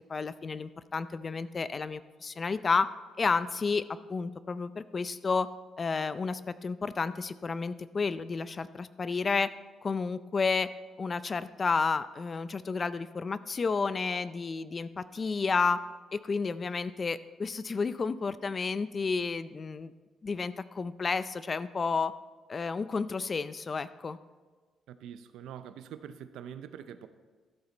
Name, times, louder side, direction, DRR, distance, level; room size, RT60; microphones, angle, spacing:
voice 1, 0.1-2.9 3.2-5.5 5.8-9.5 9.8-10.7 11.0-15.8 16.1-19.9 20.2-22.1 22.5-24.2, left 4 dB, 35° left, 15 dB, 0.4 m, -31 dB
voice 2, 24.9-27.1, right 9 dB, 85° right, 11 dB, 0.6 m, -44 dB
13.0 x 8.0 x 4.0 m, 1.3 s
cardioid pair, 90°, 0 cm